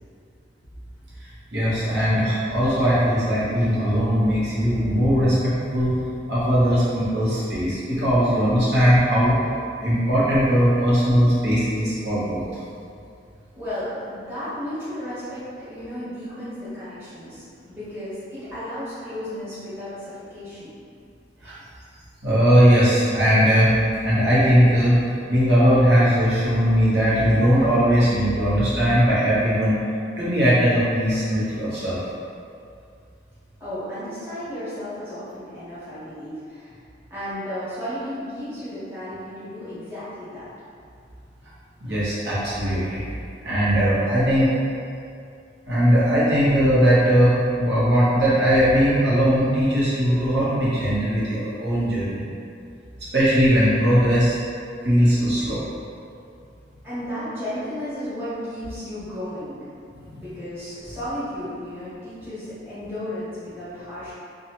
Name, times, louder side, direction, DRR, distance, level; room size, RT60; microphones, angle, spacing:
voice 1, 1.5-6.0 6.3-9.4 9.8-12.5 21.4-21.5 22.2-23.8 24.0-29.8 30.2-32.0 41.8-43.0 43.4-44.5 45.6-47.3 47.6-52.3 53.1-54.3 54.8-55.6 60.1-60.2, equal, 70° right, -10 dB, 1.0 m, -19 dB
voice 2, 13.5-20.8 33.6-36.7 37.1-40.5 56.8-59.6 60.1-64.1, equal, 10° right, -14 dB, 1.1 m, -34 dB
2.8 x 2.3 x 2.9 m, 2.4 s
head